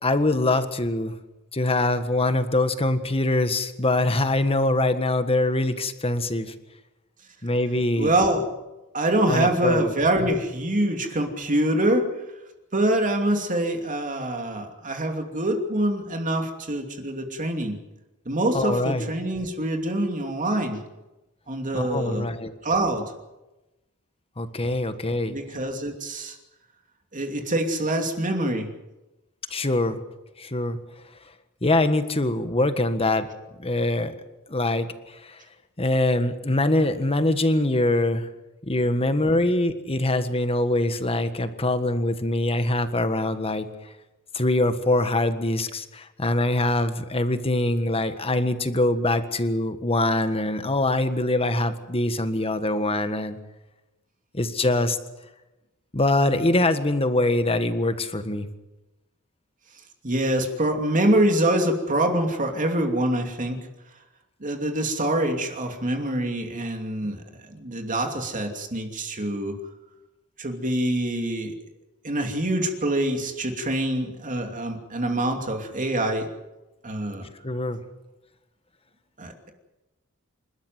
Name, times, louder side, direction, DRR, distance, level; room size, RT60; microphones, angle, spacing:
voice 1, 0.0-1.2 1.5-6.5 7.4-8.1 9.3-9.9 18.5-19.0 21.7-22.5 24.4-25.4 29.5-30.0 30.4-30.8 31.6-33.3 33.6-34.1 34.5-35.4 35.8-38.3 38.6-43.7 44.3-53.4 54.3-55.0 55.9-58.5 77.4-77.8, left 2 dB, 25° left, 10 dB, 1.6 m, -23 dB
voice 2, 7.9-8.5 8.9-12.1 12.7-17.8 18.3-20.8 21.5-22.3 22.6-23.1 25.3-26.4 27.1-28.7 60.0-63.6 64.4-67.2 67.5-69.6 70.4-71.6 72.0-76.3 76.8-77.2 79.2-79.5, right 1 dB, 35° right, 4 dB, 2.8 m, -25 dB
27.5 x 13.0 x 9.4 m, 1.0 s
head